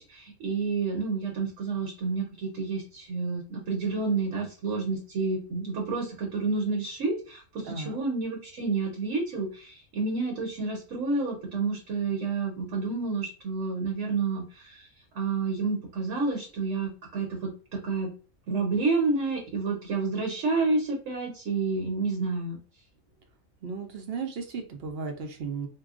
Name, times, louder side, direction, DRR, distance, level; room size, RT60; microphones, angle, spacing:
voice 1, 0.0-14.9 15.1-18.1 18.5-22.6, right 4 dB, 70° right, 0 dB, 1.2 m, -29 dB
voice 2, 7.7-8.0 23.6-25.7, right 5 dB, 55° right, 4 dB, 0.8 m, -35 dB
4.7 x 2.2 x 2.4 m, 0.37 s
omnidirectional pair, 1.4 m